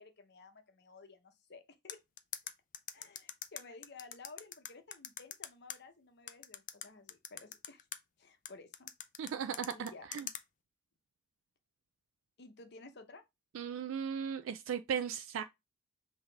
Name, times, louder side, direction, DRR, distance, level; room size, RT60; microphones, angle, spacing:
voice 1, 0.0-2.0 2.9-7.9 8.2-8.9 9.7-10.1 12.4-13.2, left 3 dB, 60° left, 0.8 m, -54 dB
sound 1, 1.9-5.8 6.3-8.0 8.5-10.4, left 10 dB, 40° left, 0.4 m, -43 dB
voice 2, 9.2-10.2 13.5-15.4, right 7 dB, 85° right, 0.3 m, -37 dB
5.6 x 2.8 x 3.3 m
head